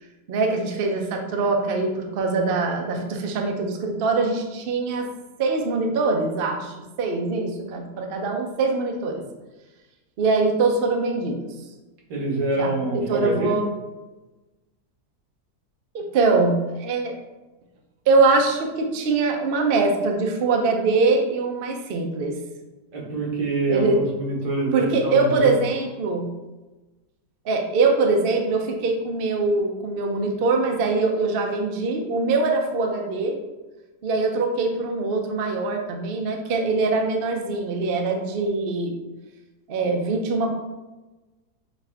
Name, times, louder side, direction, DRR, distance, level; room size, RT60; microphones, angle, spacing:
voice 1, 0.3-5.1 5.4-9.2 10.2-11.5 12.6-13.7 15.9-16.5 16.8-17.1 18.1-22.3 23.7-24.0 24.7-26.3 27.4-33.4 34.0-38.9 39.7-40.5, right 3 dB, 60° right, 3 dB, 0.6 m, -23 dB
voice 2, 12.1-13.6 22.9-25.5, right 2 dB, 85° right, -2 dB, 1.7 m, -25 dB
6.2 x 2.4 x 3.4 m, 1.1 s
omnidirectional pair, 1.7 m